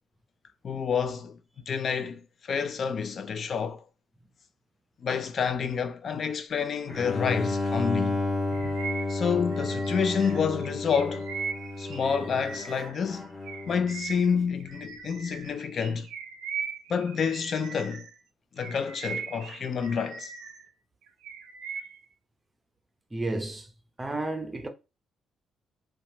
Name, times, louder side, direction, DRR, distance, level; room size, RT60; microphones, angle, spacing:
voice 1, 0.6-3.8 5.0-8.2 9.1-11.3 11.8-13.3 13.7-16.1 16.9-18.1 18.5-20.3, left 6 dB, 50° left, 0.4 m, -29 dB
Bowed string instrument, 6.9-13.9, left 2 dB, 20° left, 1.0 m, -32 dB
Bird vocalization bird call bird song, 8.5-13.0 13.4-18.2 18.6-20.7 21.0-22.1, right 6 dB, 85° right, 0.5 m, -40 dB
voice 2, 23.1-23.7 24.0-24.7, right 2 dB, 20° right, 0.6 m, -32 dB
2.9 x 2.2 x 2.7 m
cardioid pair, 90°, 0 cm